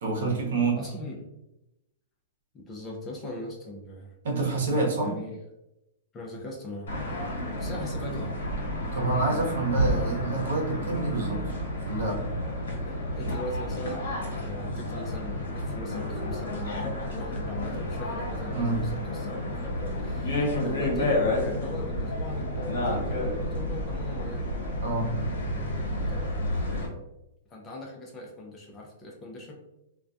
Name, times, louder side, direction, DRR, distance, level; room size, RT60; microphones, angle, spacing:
voice 1, 0.0-0.8 4.2-5.1 8.0-8.2 8.9-11.4 11.8-12.3 18.5-18.8 24.8-25.1, right 3 dB, 70° right, -1 dB, 0.8 m, -27 dB
voice 2, 0.8-1.3 2.5-4.1 5.0-5.4 6.1-6.9 7.6-8.3 12.8-14.1 14.3-24.5 26.1-26.4 27.5-29.5, left 1 dB, 20° left, -1 dB, 0.5 m, -40 dB
sound 1, 6.9-26.9, left 1 dB, 85° left, 1.1 m, -30 dB
2.3 x 2.2 x 2.6 m, 0.90 s
hypercardioid pair, 150°, 0 cm